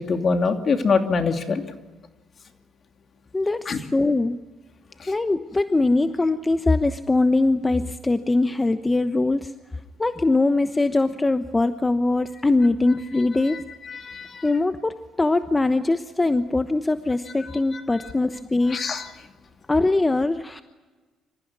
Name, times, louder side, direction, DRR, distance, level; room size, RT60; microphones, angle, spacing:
voice 1, 0.0-1.6 3.7-3.8 5.0-5.1 13.9-14.4 17.7-17.8 18.7-19.1, left 4 dB, 50° left, 6 dB, 2.7 m, -24 dB
voice 2, 3.3-4.4 5.1-9.5 10.0-13.6 14.4-18.8 19.7-20.6, left 2 dB, 20° left, 10 dB, 1.0 m, -22 dB
26.0 x 15.0 x 9.6 m, 1.3 s
supercardioid pair, 60°, 0 cm